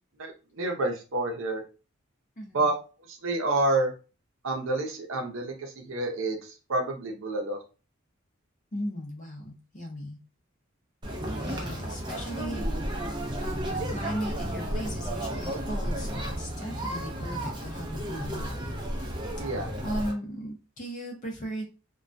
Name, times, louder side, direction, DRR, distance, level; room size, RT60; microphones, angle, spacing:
voice 1, 0.2-1.6 2.5-2.7 3.1-3.9 4.4-6.4 6.7-7.6 19.4-19.7, right 2 dB, 65° right, 2 dB, 0.6 m, -28 dB
voice 2, 2.4-2.7 8.7-10.2 11.4-12.6 13.4-18.5 18.8-19.1 19.8-21.6, equal, 35° left, 0 dB, 0.7 m, -37 dB
Conversation, 11.0-20.1, right 1 dB, 20° right, 0.4 m, -33 dB
2.2 x 2.2 x 2.5 m, 0.33 s
head